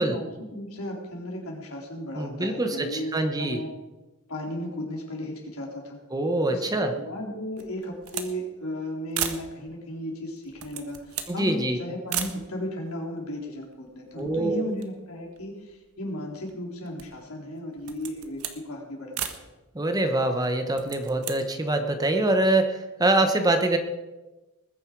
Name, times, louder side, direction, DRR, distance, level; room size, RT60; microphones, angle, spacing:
voice 1, 0.0-3.1 3.4-3.7 4.3-6.0 6.5-19.4, left 1 dB, 75° left, -1 dB, 3.9 m, -35 dB
voice 2, 2.2-3.6 6.1-7.0 11.3-11.8 14.2-14.6 19.7-23.8, right 2 dB, 15° right, 6 dB, 1.1 m, -24 dB
sound 1, 7.6-8.3 8.6-8.7 9.1-9.5 10.4-11.4 12.1-12.4 13.2-13.3 13.5-14.4 14.7-16.0 16.5-17.2 17.8-18.6 19.1-19.4 20.6-21.4, right 9 dB, 80° right, 1.3 m, -35 dB
20.5 x 9.8 x 4.7 m, 1.1 s
head